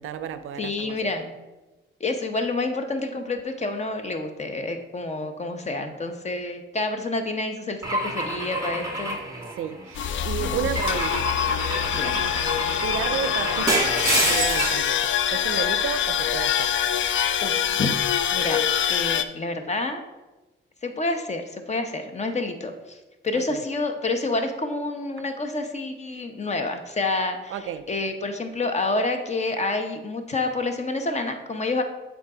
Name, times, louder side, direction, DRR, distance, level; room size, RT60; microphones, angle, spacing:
voice 1, 0.0-1.1 9.6-11.3 12.8-16.8 23.3-23.6 27.5-27.9, right 9 dB, 85° right, 0.4 m, -32 dB
voice 2, 0.6-1.3 2.0-9.2 10.5-10.6 11.9-12.2 17.4-17.9 18.3-18.6 18.9-20.0 20.8-23.0 23.2-31.8, left 2 dB, 35° left, 0.8 m, -28 dB
Car / Engine / Glass, 7.8-10.0 10.7-14.9, right 1 dB, 15° right, 1.4 m, -27 dB
sound 1, 9.9-19.2, left 10 dB, 65° left, 0.4 m, -25 dB
7.2 x 3.9 x 4.9 m
cardioid pair, 85°, 21 cm